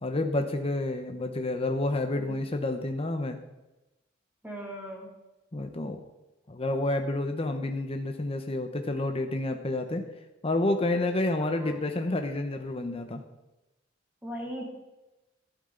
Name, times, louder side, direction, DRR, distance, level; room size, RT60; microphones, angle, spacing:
voice 1, 0.0-3.4 5.5-6.0 6.5-10.0 10.4-13.2, left 2 dB, 30° left, 5 dB, 0.9 m, -29 dB
voice 2, 4.4-5.1 11.4-11.8 14.2-14.7, equal, 10° right, -3 dB, 2.7 m, -39 dB
13.0 x 12.0 x 3.9 m, 1.0 s
head